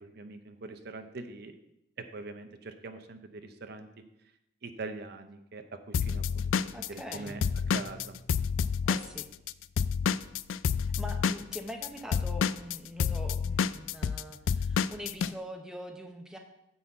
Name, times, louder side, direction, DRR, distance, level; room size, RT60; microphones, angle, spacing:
voice 1, 0.0-1.5 2.1-3.9 4.6-7.4 7.7-8.1, right 3 dB, 55° right, 8 dB, 0.6 m, -43 dB
Drum kit / Drum, 5.9-9.5 9.8-15.3, left 6 dB, 85° left, 0.3 m, -28 dB
voice 2, 6.7-7.4 8.8-9.2 11.0-16.4, equal, 5° right, 2 dB, 0.9 m, -43 dB
sound 1, 7.1-8.8, right 1 dB, 55° left, 0.8 m, -51 dB
9.4 x 4.2 x 7.4 m, 0.86 s
head